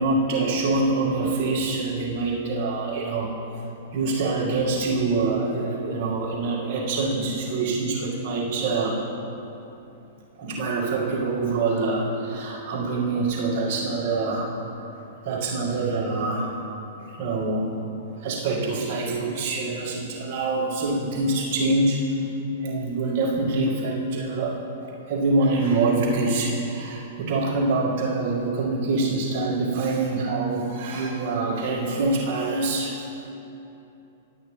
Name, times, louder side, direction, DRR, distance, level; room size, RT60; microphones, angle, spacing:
voice 1, 0.0-3.3 3.9-9.0 10.4-14.5 15.2-16.6 17.1-17.8 18.2-22.3 22.6-33.1, right 3 dB, 50° right, -4 dB, 2.0 m, -25 dB
10.0 x 8.7 x 3.3 m, 2.9 s
figure-of-eight pair, 105°, 0 cm